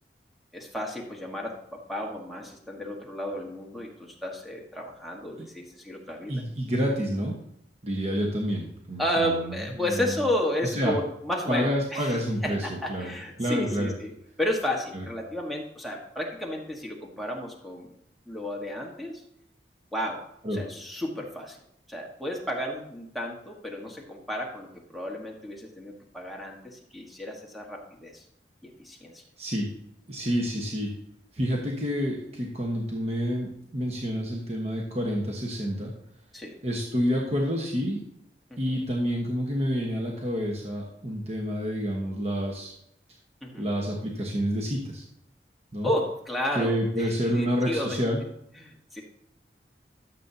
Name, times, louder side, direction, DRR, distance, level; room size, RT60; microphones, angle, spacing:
voice 1, 0.5-6.4 9.0-14.1 14.4-17.9 18.3-19.2 19.9-20.2 20.5-21.6 21.9-28.2 28.6-29.2 36.3-36.6 38.5-38.8 43.4-43.7 45.8-48.0 48.6-49.0, left 1 dB, ahead, -1 dB, 1.4 m, -32 dB
voice 2, 6.3-7.4 7.8-9.5 9.9-10.2 10.7-10.9 11.5-13.1 13.4-13.9 14.9-15.0 20.4-20.6 29.4-29.7 30.1-30.9 31.3-35.9 36.6-38.0 38.6-42.7 43.6-45.0 45.7-45.9 46.5-48.2, equal, 40° right, -1 dB, 1.2 m, -28 dB
13.0 x 7.5 x 2.8 m, 0.76 s
head